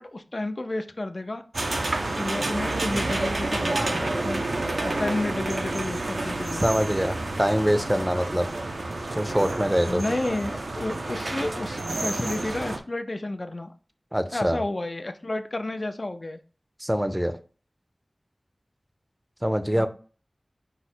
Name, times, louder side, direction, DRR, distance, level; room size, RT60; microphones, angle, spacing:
voice 1, 0.0-1.4 2.2-6.6 9.8-13.7 14.3-16.4 19.8-19.9, left 2 dB, 55° left, 8 dB, 0.4 m, -31 dB
sound 1, 1.5-12.8, right 2 dB, 90° right, 0.5 m, -29 dB
voice 2, 6.6-8.5 9.2-10.0 14.1-14.6 16.8-17.3 19.4-19.9, equal, 10° right, 9 dB, 0.5 m, -24 dB
4.7 x 2.1 x 4.2 m, 0.39 s
wide cardioid pair, 50°, 0 cm